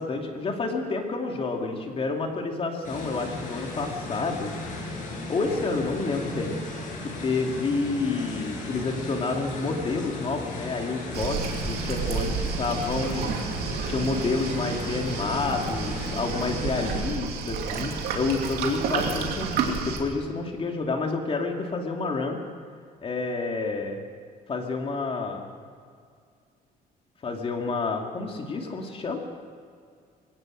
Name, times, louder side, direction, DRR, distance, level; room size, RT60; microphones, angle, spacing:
voice 1, 0.0-4.5 5.3-6.6 7.0-13.4 13.9-22.4 23.0-24.0 24.5-25.5 27.2-29.2, left 3 dB, 35° left, 2 dB, 2.6 m, -29 dB
sound 1, 2.8-17.0, left 2 dB, 55° left, 7.4 m, -36 dB
Waves surf, 11.1-20.0, right 5 dB, 80° right, 3.0 m, -30 dB
23.0 x 17.5 x 6.5 m, 2.2 s
cardioid pair, 135°, 16 cm